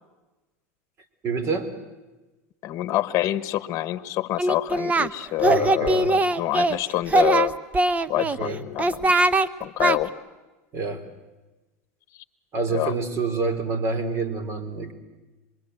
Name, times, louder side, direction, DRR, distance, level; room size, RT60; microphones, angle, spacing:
voice 1, 1.2-1.7 5.4-6.1 8.4-8.6 10.7-11.1 12.5-14.9, right 4 dB, 40° right, 10 dB, 3.8 m, -27 dB
voice 2, 2.6-7.5 8.1-9.2 9.6-10.1 12.1-12.2 12.7-12.9, left 15 dB, 45° left, 13 dB, 1.2 m, -26 dB
Singing, 4.4-5.1 5.4-6.8 7.1-8.4 8.8-9.5 9.8-10.0, right 2 dB, 20° right, 0.9 m, -21 dB
26.0 x 22.5 x 8.0 m, 1.2 s
hypercardioid pair, 105°, 8 cm